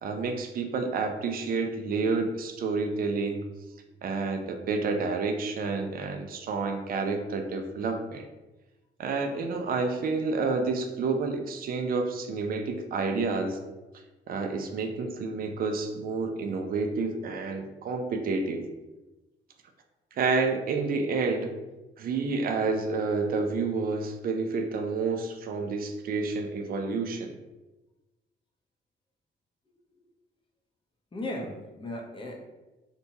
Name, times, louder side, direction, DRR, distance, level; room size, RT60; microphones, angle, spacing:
voice 1, 0.0-3.5 4.0-8.3 9.0-13.6 14.3-18.6 20.2-21.5 22.0-27.4, right 4 dB, 50° right, 5 dB, 0.4 m, -29 dB
voice 2, 31.1-32.5, left 1 dB, 25° left, 0 dB, 0.6 m, -37 dB
2.8 x 2.2 x 2.6 m, 1.1 s
cardioid pair, 90°, 20 cm